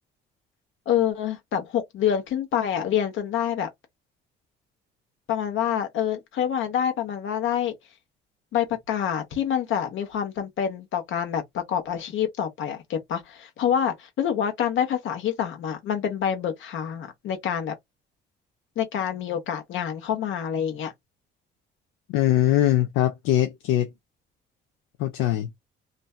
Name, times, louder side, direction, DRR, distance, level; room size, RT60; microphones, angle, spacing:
voice 1, 0.9-3.7 5.3-7.7 8.5-17.7 18.8-20.9, left 9 dB, 70° left, 0.9 m, -27 dB
voice 2, 22.1-23.9 25.0-25.5, left 13 dB, 90° left, 0.4 m, -22 dB
2.5 x 2.2 x 2.3 m
supercardioid pair, 70°, 21 cm